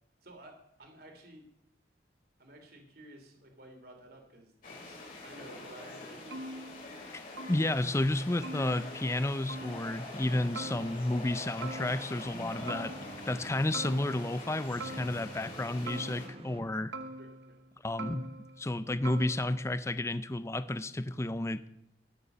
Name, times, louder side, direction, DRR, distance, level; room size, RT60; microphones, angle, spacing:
voice 1, 0.2-1.4 2.4-6.4 17.2-17.6, right 1 dB, 60° right, 3 dB, 3.2 m, -53 dB
sound 1, 4.6-16.3, left 2 dB, 50° left, 4.9 m, -45 dB
sound 2, 6.3-7.1 7.4-8.0 8.4-9.2 9.5-10.1 10.6-11.3 11.6-12.4 12.7-13.5 13.7-14.5 14.8-15.6 15.9-16.6 16.9-17.7 18.0-18.7 19.1-19.8, right 2 dB, 85° right, 1.0 m, -44 dB
voice 2, 7.1-12.9 13.2-16.9 17.8-18.3 18.6-21.7, left 1 dB, 15° left, 13 dB, 0.5 m, -31 dB
sound 3, 9.4-17.0, right 1 dB, 35° right, 1.0 m, -49 dB
18.0 x 6.9 x 6.8 m, 0.80 s
head